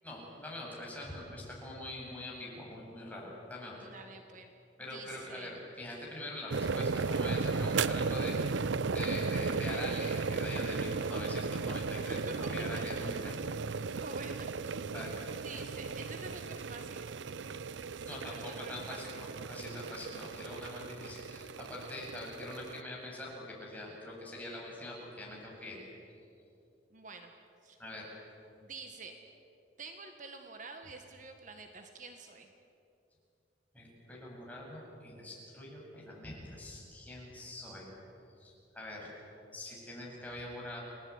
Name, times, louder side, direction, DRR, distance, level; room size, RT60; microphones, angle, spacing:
voice 1, 0.0-3.9 4.8-13.3 13.7-13.9 14.8-15.2 18.1-25.8 27.8-28.1 33.7-37.9 38.4-39.1 39.5-40.8, left 1 dB, 10° left, -4 dB, 7.9 m, -44 dB
voice 2, 3.8-4.5 4.9-5.5 12.3-13.0 14.0-14.9 15.4-17.0 17.9-19.2 26.9-27.3 27.6-27.8 28.6-29.1 29.8-32.5, right 3 dB, 45° right, 5 dB, 1.8 m, -48 dB
sound 1, 6.5-22.8, right 4 dB, 80° right, 0.6 m, -35 dB
30.0 x 20.0 x 9.8 m, 2.7 s
head